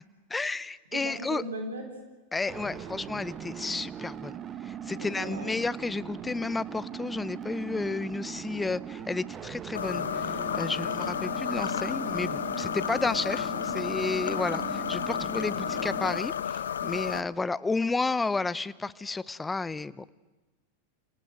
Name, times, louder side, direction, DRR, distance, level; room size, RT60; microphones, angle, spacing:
voice 1, 0.3-1.4 2.3-4.3 4.6-20.0, left 3 dB, 10° left, 17 dB, 0.7 m, -32 dB
voice 2, 0.9-1.9 5.0-5.5 10.7-10.9, right 2 dB, 90° right, 3 dB, 4.0 m, -38 dB
sound 1, 2.5-16.2, right 8 dB, 30° right, 1.1 m, -40 dB
sound 2, 9.7-17.2, left 8 dB, 90° left, 0.7 m, -32 dB
27.5 x 19.0 x 7.9 m, 1.2 s
hypercardioid pair, 110°, 0 cm